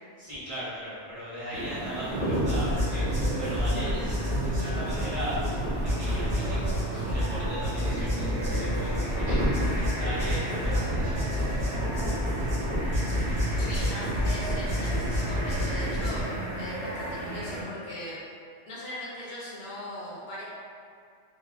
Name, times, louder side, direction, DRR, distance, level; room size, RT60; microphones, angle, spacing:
voice 1, 0.2-3.0 3.4-5.4 5.8-9.4 9.7-12.4, equal, 35° right, -13 dB, 0.9 m, -38 dB
sound 1, 1.5-17.6, right 1 dB, 70° right, 0.9 m, -35 dB
sound 2, 2.1-16.2, equal, 5° right, 1.1 m, -28 dB
voice 2, 13.6-18.2 18.7-20.4, left 1 dB, 65° left, -7 dB, 0.8 m, -39 dB
3.3 x 2.1 x 2.3 m, 2.2 s
omnidirectional pair, 1.2 m